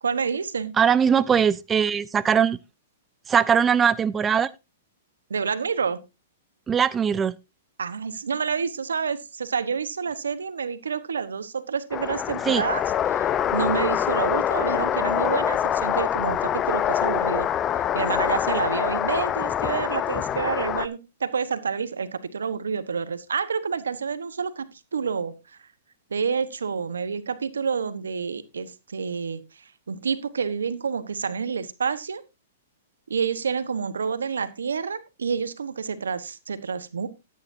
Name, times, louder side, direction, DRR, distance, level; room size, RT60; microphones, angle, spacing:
voice 1, 0.0-0.8 5.3-6.0 7.8-17.5 17.9-25.3 26.1-32.2 33.1-37.1, right 6 dB, 90° right, 1.1 m, -28 dB
voice 2, 0.8-2.6 3.3-4.5 6.7-7.3 12.5-12.6, right 7 dB, 20° right, 0.5 m, -20 dB
sound 1, 11.9-20.9, left 10 dB, 25° left, 0.6 m, -25 dB
13.5 x 9.9 x 2.7 m
hypercardioid pair, 130°, 0 cm